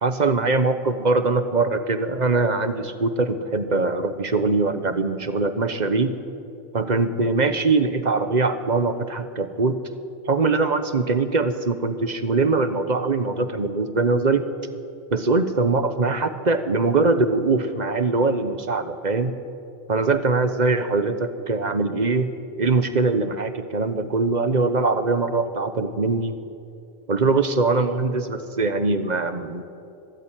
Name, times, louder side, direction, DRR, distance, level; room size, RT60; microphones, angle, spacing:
voice 1, 0.0-6.1 6.7-9.8 10.3-14.5 15.1-19.3 19.9-22.3 22.6-26.4 27.1-29.6, right 3 dB, 45° right, 10 dB, 1.2 m, -22 dB
23.5 x 13.0 x 9.1 m, 2.6 s
omnidirectional pair, 1.1 m